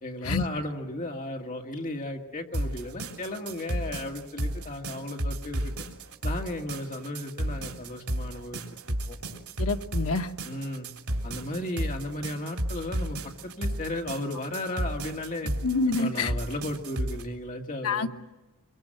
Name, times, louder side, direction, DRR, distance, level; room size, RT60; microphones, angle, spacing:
voice 1, 0.0-5.9 6.2-8.6 8.9-9.2 10.5-10.9 11.2-13.2 13.4-15.5 16.0-18.1, left 1 dB, 35° left, 2 dB, 2.1 m, -35 dB
sound 1, 2.5-17.2, right 1 dB, 80° right, 3.2 m, -33 dB
voice 2, 9.6-10.3 15.6-16.3 17.8-18.1, left 3 dB, 70° left, 6 dB, 1.3 m, -27 dB
24.5 x 23.5 x 7.8 m, 1.1 s
head